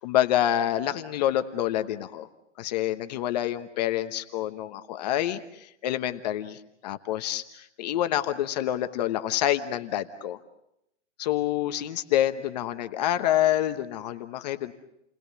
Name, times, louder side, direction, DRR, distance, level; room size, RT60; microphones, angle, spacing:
voice 1, 0.0-2.3 2.6-10.4 11.2-14.7, left 12 dB, 35° left, 9 dB, 1.1 m, -27 dB
29.5 x 21.0 x 8.4 m, 0.82 s
hypercardioid pair, 165°, 36 cm